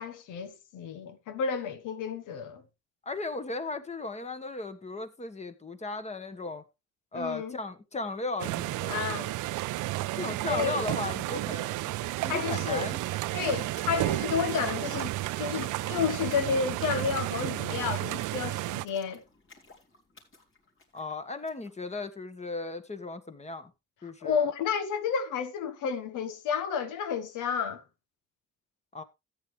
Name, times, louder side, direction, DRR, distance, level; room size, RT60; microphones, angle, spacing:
voice 1, 0.0-2.6 7.1-7.6 8.9-9.3 10.5-10.9 12.3-12.9 13.3-19.2 24.2-27.8, left 6 dB, 90° left, 1.4 m, -31 dB
voice 2, 3.0-6.6 7.1-9.3 10.0-11.9 12.2-13.0 20.9-23.7 24.0-24.5 28.9-29.0, left 3 dB, 20° left, 1.4 m, -36 dB
sound 1, 8.4-18.8, right 18 dB, 85° right, 0.5 m, -32 dB
sound 2, 11.3-11.4 11.6-21.8, left 3 dB, 45° left, 3.5 m, -57 dB
13.5 x 8.9 x 3.3 m
cardioid pair, 90°, 30 cm